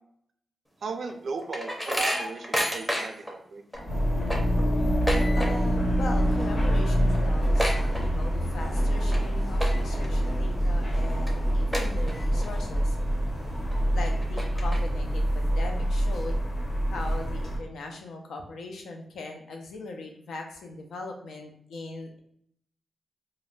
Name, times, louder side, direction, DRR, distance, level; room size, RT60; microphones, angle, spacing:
voice 1, 0.8-3.6, right 4 dB, 65° right, 6 dB, 0.4 m, -36 dB
sound 1, 0.9-3.3 3.7-3.8 4.1-5.8 6.1-6.5 6.7-6.8 7.1-8.5 8.9-9.2 9.5-10.1 10.6-10.7 11.3-11.4 11.7-12.5 12.9-13.0 13.7-13.8 14.2-15.1, equal, 10° left, 0.6 m, -30 dB
Subway metro underground, 3.7-15.8, equal, 30° left, 1.1 m, -38 dB
sound 2, 3.9-17.6, equal, 50° left, 1.4 m, -26 dB
voice 2, 5.4-13.0 13.9-16.4 16.9-22.2, left 3 dB, 85° left, 3 dB, 0.5 m, -39 dB
2.4 x 2.1 x 3.1 m, 0.68 s
cardioid pair, 85°, 0 cm